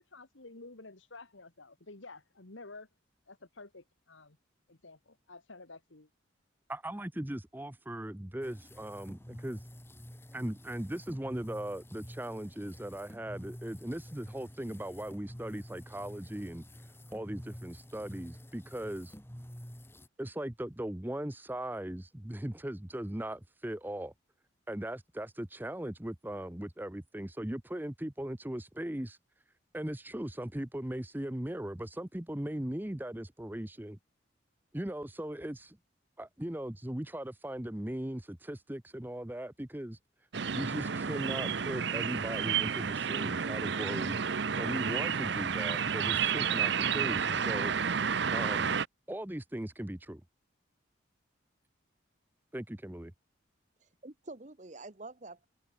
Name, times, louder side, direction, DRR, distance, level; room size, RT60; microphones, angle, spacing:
voice 1, 0.0-2.9 3.3-4.4 4.7-6.1, left 3 dB, 75° left, 2.1 m, -51 dB
voice 2, 6.7-9.6 10.3-16.6 17.1-19.2 20.2-24.1 24.7-29.2 29.7-34.0 34.7-35.8 36.2-40.0 40.5-47.7 48.3-48.8 49.1-50.2 52.5-53.1, right 1 dB, 10° right, 0.7 m, -39 dB
sound 1, 8.4-20.1, equal, 10° left, 4.3 m, -49 dB
sound 2, 40.3-48.9, right 7 dB, 60° right, 0.7 m, -31 dB
voice 3, 53.8-55.5, right 2 dB, 35° right, 1.1 m, -47 dB
head